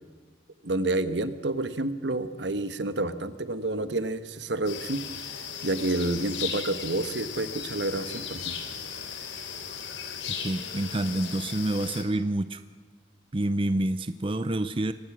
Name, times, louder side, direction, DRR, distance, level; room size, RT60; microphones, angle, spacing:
voice 1, 0.6-5.0 5.6-8.6, right 2 dB, 70° right, 12 dB, 1.3 m, -29 dB
sound 1, 4.6-12.0, left 7 dB, 80° left, 3.3 m, -37 dB
voice 2, 10.4-12.6 13.3-14.9, right 1 dB, 30° right, 12 dB, 0.6 m, -28 dB
24.0 x 19.0 x 6.2 m, 1.4 s
head